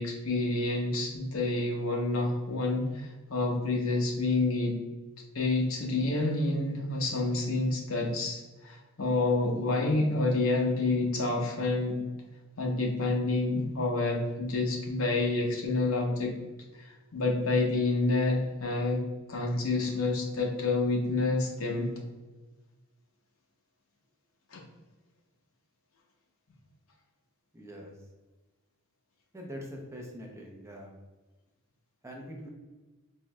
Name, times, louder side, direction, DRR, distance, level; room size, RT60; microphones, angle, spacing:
voice 1, 0.0-4.8 5.3-12.0 12.6-16.3 16.7-19.0 19.3-21.9 24.5-24.6, left 2 dB, 65° left, 0 dB, 0.8 m, -28 dB
voice 2, 27.5-27.9 29.3-30.9 32.0-32.5, equal, 15° right, 0 dB, 0.5 m, -43 dB
4.6 x 3.0 x 2.2 m, 1.2 s
head